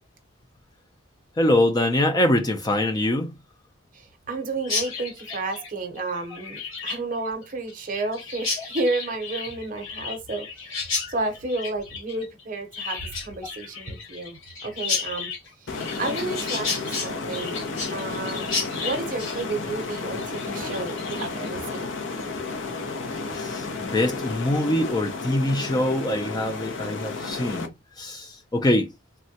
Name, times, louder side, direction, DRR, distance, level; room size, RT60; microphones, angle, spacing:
voice 1, 1.4-3.3 8.6-8.7 23.3-28.9, left 1 dB, 20° left, 0.4 m, -24 dB
voice 2, 3.9-15.3 15.6-17.6 17.9-22.0, right 2 dB, 40° right, 0.7 m, -31 dB
Chirp tweet, 4.6-21.5, left 4 dB, 85° left, 1.0 m, -33 dB
Foley Object Flame Thrower Loop Stereo, 15.7-27.7, left 3 dB, 65° left, 0.6 m, -32 dB
3.5 x 2.1 x 2.7 m
head